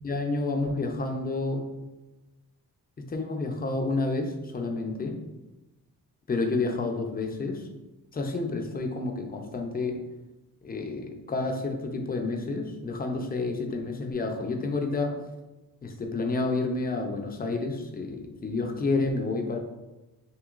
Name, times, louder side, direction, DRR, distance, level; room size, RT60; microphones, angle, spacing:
voice 1, 0.0-1.6 3.1-5.2 6.3-7.7 8.1-10.0 10.6-15.1 15.8-19.6, left 3 dB, 25° left, 3 dB, 0.6 m, -29 dB
6.0 x 3.0 x 2.5 m, 1.0 s
wide cardioid pair, 110°, 36 cm